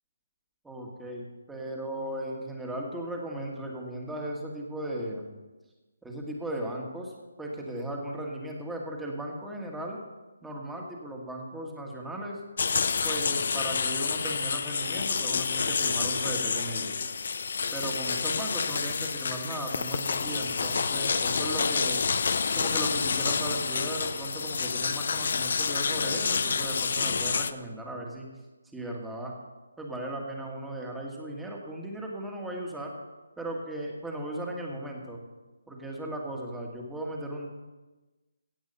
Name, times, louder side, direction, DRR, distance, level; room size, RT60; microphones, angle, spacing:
voice 1, 0.6-5.3 6.0-7.1 7.4-10.0 10.4-12.4 13.0-17.0 17.7-22.0 22.5-28.3 28.7-29.3 29.8-32.9 33.4-35.2 35.7-37.5, right 1 dB, 5° right, -1 dB, 1.6 m, -36 dB
sound 1, 12.6-27.5, left 5 dB, 55° left, 0.6 m, -28 dB
17.0 x 7.9 x 5.5 m, 1.2 s
hypercardioid pair, 165°, 0 cm